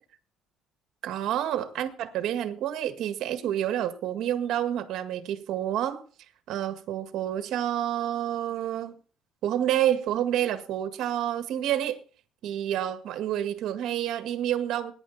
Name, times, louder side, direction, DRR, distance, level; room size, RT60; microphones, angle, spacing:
voice 1, 1.0-6.0 6.5-9.0 9.4-12.0 12.4-14.9, right 11 dB, 55° right, 1.8 m, -28 dB
21.0 x 10.0 x 4.2 m
cardioid pair, 170°, 0 cm